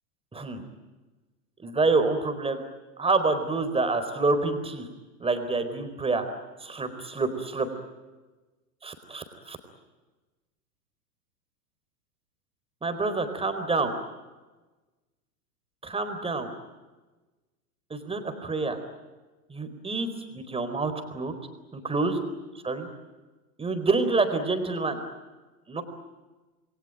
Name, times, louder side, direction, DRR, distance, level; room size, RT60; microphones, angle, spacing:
voice 1, 1.6-2.6 3.0-4.9 5.2-6.3 6.6-7.7 8.8-9.6 12.8-13.9 15.8-16.5 17.9-18.8 19.5-21.3 21.7-22.2 22.6-22.9 23.6-25.0 25.7-25.8, right 3 dB, 10° right, 8 dB, 4.2 m, -27 dB
28.0 x 22.5 x 9.0 m, 1.2 s
hypercardioid pair, 110°, 49 cm